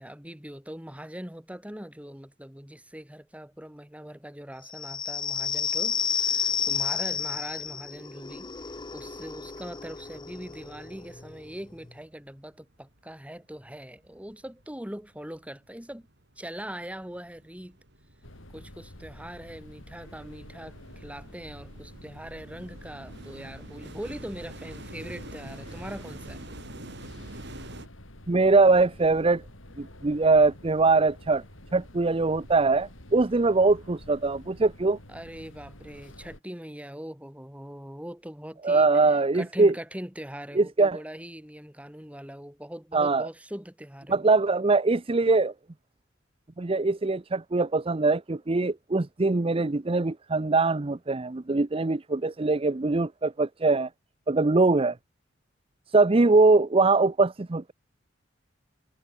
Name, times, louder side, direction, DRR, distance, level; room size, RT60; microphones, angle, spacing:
voice 1, 0.0-8.5 8.9-16.1 16.4-17.8 18.5-26.4 35.1-44.2, equal, 5° right, 3.6 m, -41 dB
sound 1, 4.7-11.9, left 6 dB, 25° left, 0.8 m, -31 dB
sound 2, 11.2-11.3 11.6-12.5 12.9-27.9, right 1 dB, 60° right, 6.0 m, -47 dB
sound 3, 18.2-36.4, left 1 dB, 80° left, 5.4 m, -48 dB
voice 2, 28.3-29.4 29.8-31.4 31.7-35.0 38.6-39.7 40.6-41.0 42.9-43.3 44.1-45.5 46.6-53.9 54.3-55.0 55.9-57.7, right 3 dB, 30° right, 0.6 m, -22 dB
head